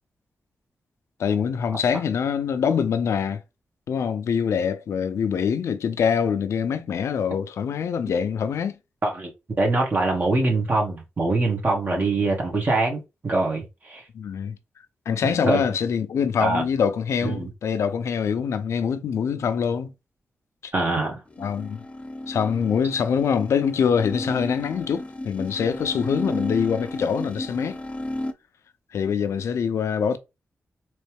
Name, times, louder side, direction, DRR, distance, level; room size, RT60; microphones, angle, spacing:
voice 1, 1.2-3.4 3.9-8.8 11.9-12.1 14.1-14.6 15.1-19.9 20.6-20.7 21.4-21.8 22.3-27.8 28.9-30.2, left 7 dB, 85° left, 0.6 m, -24 dB
voice 2, 9.6-14.0 15.4-15.6 16.4-16.6 17.2-17.5 20.7-21.2, right 2 dB, 40° right, 2.0 m, -23 dB
sound 1, 21.3-28.3, left 1 dB, 25° left, 0.6 m, -33 dB
4.1 x 3.1 x 3.5 m
cardioid pair, 80°, 5 cm